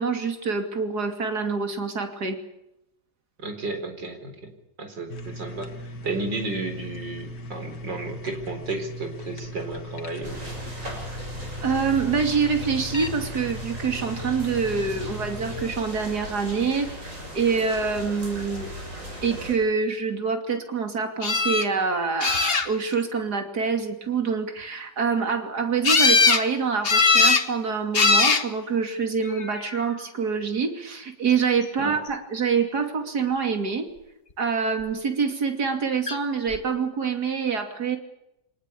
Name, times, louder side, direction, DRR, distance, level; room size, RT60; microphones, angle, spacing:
voice 1, 0.0-2.4 11.6-16.9 17.3-18.7 19.2-33.9 34.4-38.0, right 5 dB, 60° right, 6 dB, 3.3 m, -26 dB
voice 2, 3.4-4.5 4.8-5.7 6.0-10.6 31.8-31.9, right 3 dB, 80° right, 6 dB, 4.8 m, -33 dB
sound 1, 5.1-15.7, equal, 70° left, 2.4 m, -38 dB
sound 2, 10.2-19.6, equal, 45° right, 7.6 m, -37 dB
sound 3, 21.2-21.7 22.2-22.9 25.8-26.4 26.8-27.5 27.9-28.4 29.4-29.8 36.1-36.2 36.5-36.6, left 4 dB, 35° left, 1.5 m, -20 dB
25.0 x 19.5 x 8.5 m, 0.85 s
omnidirectional pair, 1.9 m